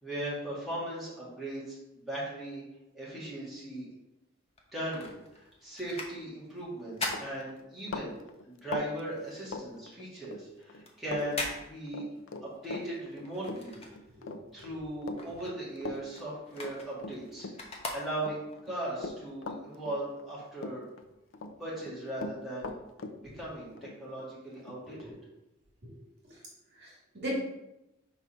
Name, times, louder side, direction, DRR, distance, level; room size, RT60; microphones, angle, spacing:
voice 1, 0.0-2.6 2.9-3.9 4.7-8.2 8.4-12.1 12.4-13.8 14.5-17.5 17.9-20.8 21.6-22.7 23.2-25.1, right 1 dB, ahead, -9 dB, 2.1 m, -38 dB
sound 1, 4.5-8.2 8.5-14.5 14.8-18.6 19.1-19.2, left 2 dB, 30° left, 0.8 m, -41 dB
Run, 6.6-6.8 7.1-10.4 10.7-11.3 11.5-17.9 18.2-20.3 20.6-21.5 21.8-25.1, left 3 dB, 65° left, 0.5 m, -41 dB
voice 2, 14.1-14.7 23.2-23.4 24.8-25.1 26.2-26.3 26.8-27.3, right 1 dB, 55° right, -4 dB, 2.2 m, -43 dB
4.8 x 4.0 x 5.6 m, 0.92 s
head